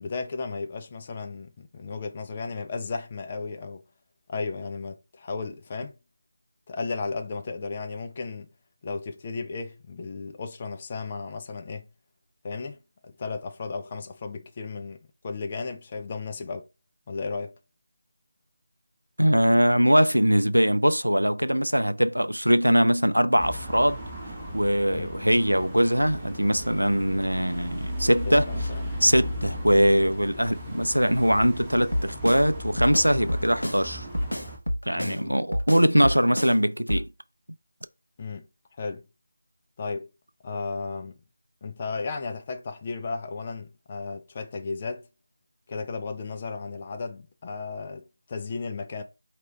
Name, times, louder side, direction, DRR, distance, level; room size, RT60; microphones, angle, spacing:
voice 1, 0.0-3.8 4.3-5.9 6.7-8.5 8.8-11.9 12.4-15.0 15.2-16.7 17.1-17.6 24.9-25.2 27.1-27.2 28.3-28.9 34.9-35.4 38.2-38.5 38.8-39.0 39.8-40.1 40.4-41.2 41.6-45.1 45.7-49.0, left 4 dB, 25° left, 0.5 m, -34 dB
voice 2, 19.2-24.0 24.5-28.5 29.0-34.1 34.9-37.1, equal, 85° right, 0.4 m, -22 dB
sound 1, 23.4-34.6, equal, 5° right, 1.1 m, -36 dB
Drum kit, 31.9-32.5 32.8-33.8 34.1-35.2 35.5-36.6 36.9-37.1, equal, 85° left, 0.9 m, -29 dB
4.4 x 2.8 x 3.3 m
figure-of-eight pair, 160°, 0 cm